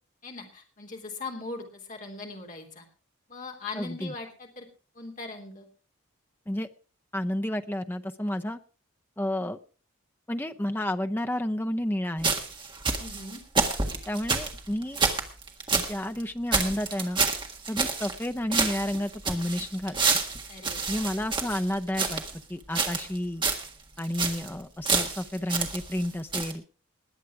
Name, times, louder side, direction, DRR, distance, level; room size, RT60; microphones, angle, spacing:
voice 1, 0.2-2.8 3.3-4.7 4.9-5.7 13.0-13.4 20.5-21.1, left 3 dB, 35° left, 1 dB, 3.3 m, -40 dB
voice 2, 3.8-4.1 6.5-6.7 7.1-8.6 9.2-9.6 10.3-12.3 14.1-15.0 15.7-17.2 17.7-20.2 20.9-22.2 22.5-23.4 24.0-26.6, left 1 dB, 10° left, 7 dB, 0.6 m, -31 dB
sound 1, 12.2-16.2 16.5-18.3 18.5-22.4 22.7-23.2 23.4-23.7 24.0-24.5 24.9-26.1 26.3-26.5, right 4 dB, 20° right, 1.6 m, -28 dB
20.5 x 8.2 x 4.8 m, 0.39 s
head